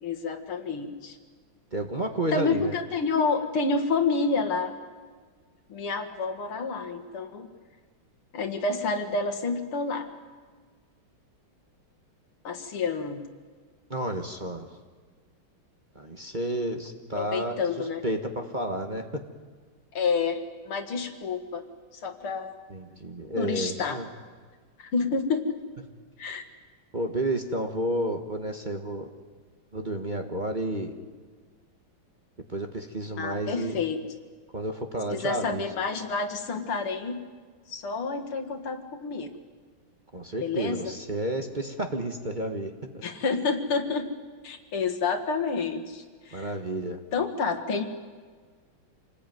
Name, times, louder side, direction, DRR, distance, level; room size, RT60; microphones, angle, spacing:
voice 1, 0.0-1.2 2.3-4.7 5.7-7.5 8.3-10.1 12.4-13.2 17.1-18.0 19.9-21.6 22.0-22.5 23.4-24.0 24.8-25.6 26.2-26.4 33.2-34.0 35.1-37.2 37.7-39.3 40.4-40.8 43.0-44.1 44.4-46.5 47.1-47.8, left 4 dB, 85° left, 7 dB, 2.8 m, -29 dB
voice 2, 1.7-2.8 13.9-14.8 15.9-19.2 22.7-24.1 26.9-29.1 29.7-30.9 32.5-33.8 34.5-35.7 40.1-43.0 46.3-47.0, right 1 dB, 25° right, 3 dB, 1.4 m, -31 dB
27.0 x 20.0 x 9.4 m, 1.5 s
omnidirectional pair, 2.3 m